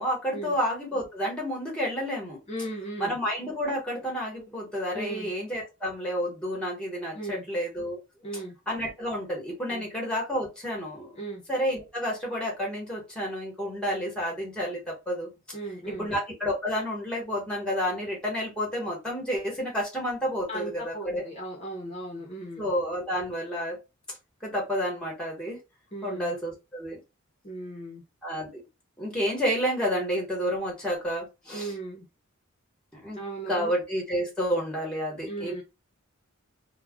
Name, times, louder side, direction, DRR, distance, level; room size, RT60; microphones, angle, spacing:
voice 1, 0.0-2.4 3.0-8.0 8.7-11.2 11.5-15.3 15.9-21.2 22.6-23.8 24.1-24.2 24.4-25.6 26.0-27.0 28.2-28.6 29.0-31.7 32.9-33.2 33.5-35.6, equal, 5° left, 1.0 m, -30 dB
voice 2, 2.5-3.2 4.9-5.3 7.1-7.4 8.2-8.5 9.7-9.8 11.2-11.4 15.5-16.1 20.5-22.7 25.9-26.3 27.4-28.0 31.5-32.1 33.1-33.7 35.2-35.6, right 2 dB, 30° left, 0.7 m, -37 dB
2.3 x 2.1 x 3.5 m
head